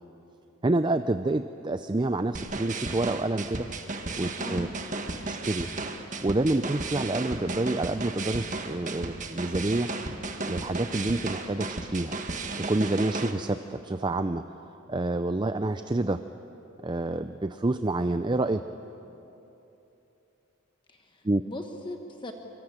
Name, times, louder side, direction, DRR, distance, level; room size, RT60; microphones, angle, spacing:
voice 1, 0.6-3.7 4.2-4.7 5.2-5.7 6.2-9.9 10.5-12.2 12.6-16.2 16.8-18.6 21.2-21.4, right 2 dB, 20° right, 9 dB, 0.5 m, -28 dB
sound 1, 2.3-13.3, right 3 dB, 40° right, 1.5 m, -34 dB
voice 2, 4.4-4.7 20.9-22.3, left 1 dB, 25° left, 4 dB, 1.3 m, -39 dB
24.5 x 23.5 x 8.9 m, 3.0 s
head